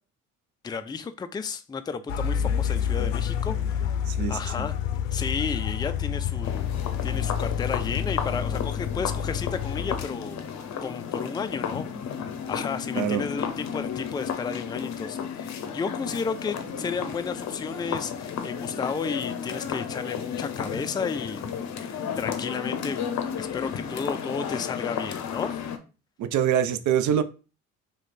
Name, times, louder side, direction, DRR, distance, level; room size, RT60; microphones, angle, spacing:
voice 1, 0.6-3.9 4.3-4.8 5.1-6.7 7.0-10.5 10.8-12.2 12.5-21.5 21.8-23.1 23.4-25.6, left 5 dB, 10° left, 0.4 m, -33 dB
sound 1, 2.1-10.1, left 8 dB, 85° left, 0.6 m, -28 dB
voice 2, 4.1-4.7 12.9-13.2 26.2-27.2, right 9 dB, 50° right, 0.6 m, -25 dB
sound 2, 6.4-25.8, left 7 dB, 45° left, 0.8 m, -33 dB
3.1 x 3.1 x 4.1 m
hypercardioid pair, 60°, 38 cm